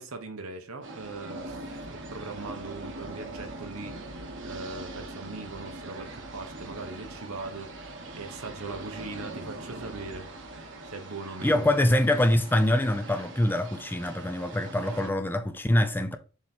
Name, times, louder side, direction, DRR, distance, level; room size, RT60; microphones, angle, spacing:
voice 1, 0.0-1.6 1.9-4.1 4.4-7.7 8.1-11.7, right 3 dB, 80° right, 1.2 m, -40 dB
sound 1, 0.8-15.1, right 2 dB, 60° right, 1.3 m, -42 dB
voice 2, 11.4-16.2, left 1 dB, 10° left, 0.5 m, -24 dB
7.1 x 3.2 x 4.3 m
head